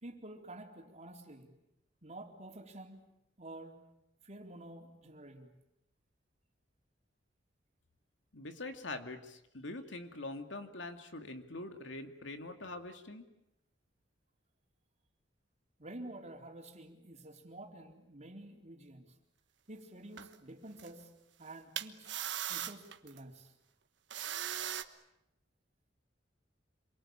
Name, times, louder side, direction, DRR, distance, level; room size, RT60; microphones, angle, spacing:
voice 1, 0.0-1.6 2.0-3.9 4.2-5.5 15.8-19.1 19.7-21.1 21.4-22.2 22.5-23.5, right 1 dB, 40° right, 2 dB, 3.8 m, -50 dB
voice 2, 8.3-13.3, left 2 dB, 80° left, 7 dB, 2.6 m, -44 dB
sound 1, 20.2-20.3 20.8-20.9 21.8-23.2 24.1-24.8, right 10 dB, 70° right, 1.3 m, -38 dB
27.5 x 23.0 x 8.8 m, 0.85 s
head